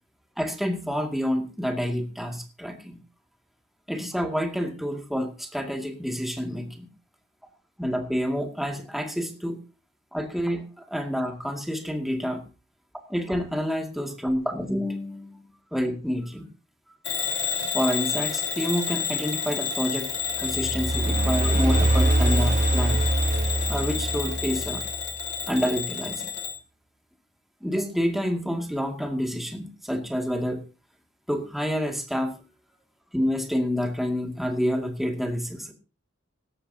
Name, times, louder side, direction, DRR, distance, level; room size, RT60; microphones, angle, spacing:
voice 1, 0.4-3.0 3.9-6.9 7.8-9.6 10.1-12.4 13.1-15.4 15.7-16.5 17.7-20.1 20.4-23.0 23.7-24.8 25.5-26.3 27.6-30.6 31.3-32.4 33.1-35.7, equal, ahead, 3 dB, 2.3 m, -28 dB
Bell / Alarm, 17.0-26.6, left 6 dB, 55° left, 3.2 m, -30 dB
sound 1, 20.4-25.1, right 1 dB, 40° right, 1.1 m, -24 dB
17.5 x 13.5 x 2.8 m, 0.32 s
head